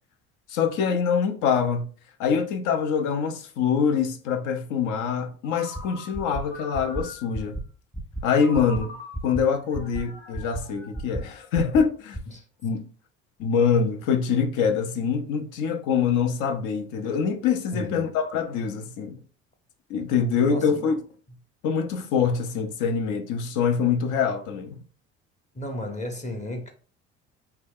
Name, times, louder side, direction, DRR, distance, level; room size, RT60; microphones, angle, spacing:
voice 1, 0.5-1.9 2.2-7.6 8.2-9.0 9.2-12.2 12.6-12.8 13.4-19.2 19.9-21.0 21.6-24.8, left 6 dB, 70° left, 0.6 m, -24 dB
Ringtone, 5.4-7.5 8.4-11.7, left 2 dB, 85° left, 1.1 m, -44 dB
sound 1, 5.8-5.9 6.1-6.4 6.7-7.0 7.3-7.6 7.9-8.2 8.5-8.8 9.1-9.4 9.7-10.0 10.3-10.6 10.9-11.2 11.5-11.8 12.1-12.2, right 1 dB, 5° left, 0.3 m, -32 dB
voice 2, 17.7-18.0 20.4-20.8 25.5-26.7, left 1 dB, 20° left, 0.8 m, -33 dB
2.7 x 2.2 x 3.5 m
supercardioid pair, 75°, 32 cm